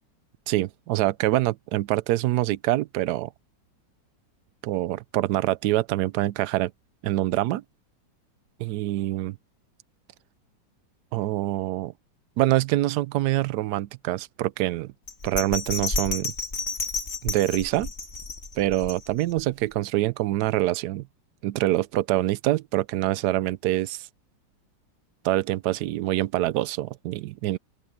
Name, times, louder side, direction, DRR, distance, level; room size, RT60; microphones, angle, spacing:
voice 1, 0.5-3.3 4.6-6.7 7.0-7.6 8.6-9.4 11.1-11.9 12.4-14.9 15.2-16.3 17.2-17.9 18.6-21.1 21.4-24.1 25.2-27.6, right 16 dB, 70° right, 1.0 m, -25 dB
Bell, 15.1-19.4 19.8-19.9, left 3 dB, 35° left, 3.2 m, -31 dB
open air
omnidirectional pair, 2.0 m